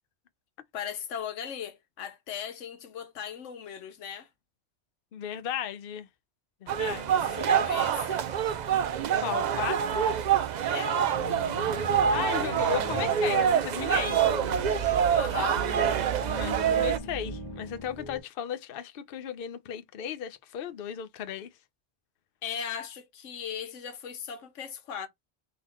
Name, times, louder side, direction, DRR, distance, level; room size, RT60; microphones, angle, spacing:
voice 1, 0.7-4.3 7.1-8.3 10.7-11.0 15.1-15.6 22.4-25.1, left 8 dB, 85° left, 1.1 m, -38 dB
voice 2, 5.1-6.1 6.6-7.4 9.2-10.1 12.1-14.3 16.2-21.5, left 9 dB, 55° left, 0.8 m, -35 dB
sound 1, 6.7-17.0, right 8 dB, 60° right, 0.4 m, -26 dB
Piano, 11.1-18.2, right 1 dB, 35° left, 1.6 m, -39 dB
3.9 x 2.9 x 4.2 m
omnidirectional pair, 1.2 m